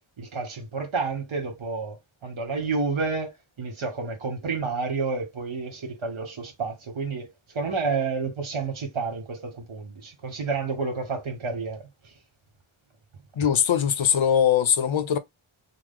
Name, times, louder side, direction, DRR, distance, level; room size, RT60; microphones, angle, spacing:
voice 1, 0.2-3.3 3.6-7.3 7.5-11.8, right 4 dB, 70° right, 1.3 m, -30 dB
voice 2, 13.4-15.2, left 8 dB, 70° left, 0.7 m, -21 dB
3.1 x 2.0 x 3.6 m
wide cardioid pair, 90°, 50 cm